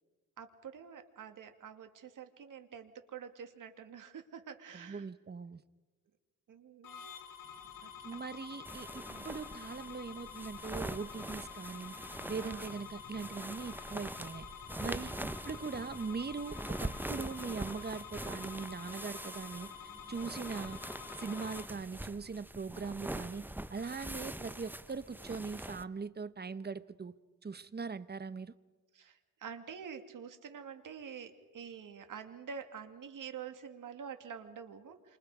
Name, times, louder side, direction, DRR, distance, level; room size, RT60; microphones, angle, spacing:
voice 1, 0.4-5.1 6.5-7.1 7.8-7.9 9.1-9.3 12.4-12.6 14.8-15.3 28.9-35.2, right 7 dB, 75° right, 2.4 m, -47 dB
voice 2, 4.7-5.6 8.0-11.9 12.3-14.5 14.8-15.1 15.4-19.7 20.1-20.8 21.2-27.1 27.4-28.5, right 4 dB, 30° right, 1.0 m, -41 dB
sound 1, 6.8-21.6, left 8 dB, 80° left, 4.3 m, -49 dB
sound 2, 7.4-21.8, left 3 dB, 45° left, 6.5 m, -63 dB
sound 3, 8.6-25.8, right 1 dB, 5° right, 0.8 m, -44 dB
28.0 x 26.5 x 5.0 m
cardioid pair, 90°, 32 cm